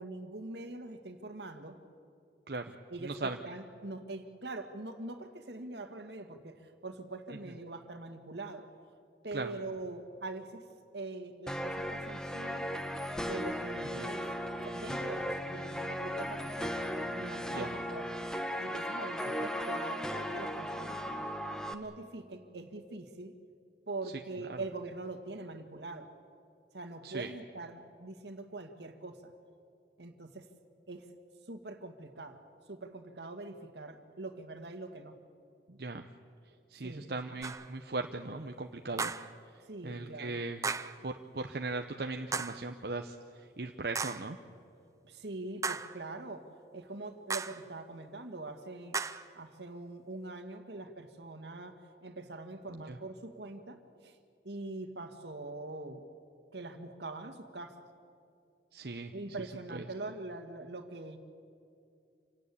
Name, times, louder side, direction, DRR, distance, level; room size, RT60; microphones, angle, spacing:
voice 1, 0.0-1.8 2.9-8.7 9.2-10.6 10.9-12.7 13.2-14.2 14.6-16.8 17.2-18.1 18.6-21.0 21.7-23.3 23.9-26.1 26.7-29.3 30.0-30.5 30.9-31.1 31.5-32.4 32.7-35.2 36.8-37.4 39.6-40.4 45.0-46.5 46.7-49.0 49.4-54.2 54.4-56.1 56.5-57.8 59.1-61.2, right 2 dB, 80° right, 7 dB, 2.0 m, -43 dB
voice 2, 2.5-3.4 9.3-9.5 14.0-14.1 17.5-17.7 24.5-24.6 27.0-27.3 35.7-36.1 36.7-39.1 39.8-40.7 41.0-44.4 52.7-53.0 58.7-59.1 59.7-59.8, right 3 dB, 65° right, 5 dB, 0.9 m, -38 dB
sound 1, 11.5-21.7, equal, 5° left, 1.1 m, -36 dB
sound 2, 37.4-37.7 39.0-39.4 40.6-41.0 42.3-42.7 43.9-44.3 45.6-46.0 47.3-47.6 48.9-49.3, right 4 dB, 20° right, 0.6 m, -36 dB
27.5 x 17.5 x 8.6 m, 2.4 s
head